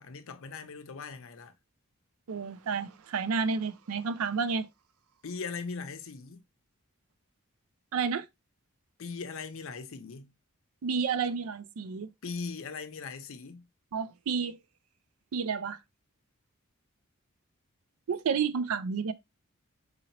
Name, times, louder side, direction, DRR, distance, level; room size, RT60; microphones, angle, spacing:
voice 1, 0.0-1.5 5.2-6.4 9.0-10.3 12.2-13.6, left 4 dB, 70° left, 0.6 m, -39 dB
voice 2, 2.3-4.7 7.9-8.2 10.8-12.1 13.9-14.6 15.3-15.8 18.1-19.1, right 5 dB, 85° right, 0.4 m, -30 dB
4.0 x 2.8 x 2.8 m
head